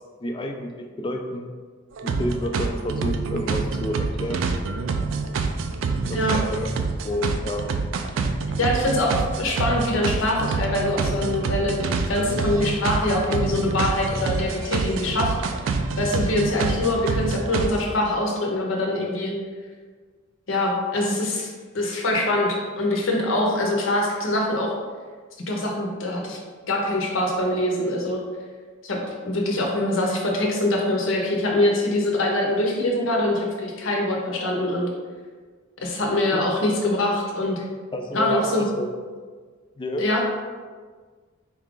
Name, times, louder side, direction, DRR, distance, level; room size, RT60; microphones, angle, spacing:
voice 1, 0.0-1.5 2.0-4.6 6.1-7.7 36.3-36.7 37.6-37.7 37.9-38.9 39.8-40.1, equal, 25° left, 3 dB, 0.3 m, -30 dB
sound 1, 2.0-17.8, right 4 dB, 65° right, 0.3 m, -26 dB
voice 2, 8.6-11.8 12.1-15.3 16.0-19.3 20.5-21.5 21.7-24.7 25.5-26.4 26.7-28.2 28.8-29.0 29.2-34.9 35.8-37.6 38.1-38.7 40.0-40.2, left 1 dB, 70° left, 0 dB, 0.7 m, -24 dB
4.1 x 2.4 x 3.7 m, 1.5 s
head